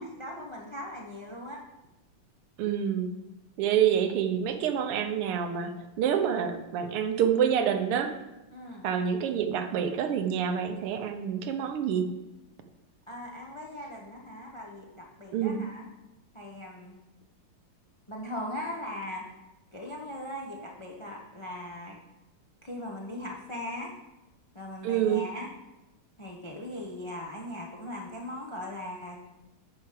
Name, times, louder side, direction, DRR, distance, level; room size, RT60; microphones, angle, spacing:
voice 1, 0.0-1.6 8.5-8.9 13.1-15.9 16.3-17.0 18.1-19.3 19.7-22.0 22.6-23.9 24.5-25.5 26.2-29.2, left 1 dB, 50° left, -1 dB, 0.3 m, -39 dB
voice 2, 2.6-3.1 3.6-8.1 8.8-12.1 15.3-15.6 24.8-25.2, right 8 dB, 90° right, 7 dB, 1.8 m, -27 dB
9.0 x 5.8 x 5.0 m, 1.0 s
omnidirectional pair, 2.4 m